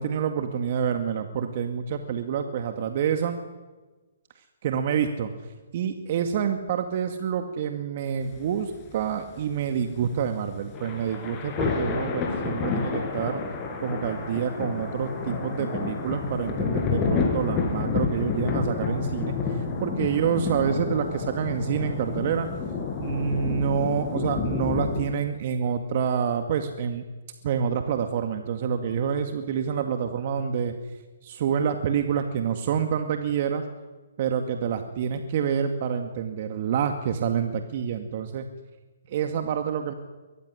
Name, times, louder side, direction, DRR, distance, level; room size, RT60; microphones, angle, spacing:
voice 1, 0.0-3.4 4.6-5.3 5.7-13.4 13.8-22.5 23.0-27.0 27.4-30.7 31.2-33.6 34.2-38.5 39.1-39.9, right 7 dB, 50° right, 6 dB, 2.2 m, -27 dB
sound 1, 8.2-25.1, left 5 dB, 25° left, 5.3 m, -29 dB
23.5 x 19.0 x 9.9 m, 1.2 s
hypercardioid pair, 140°, 0 cm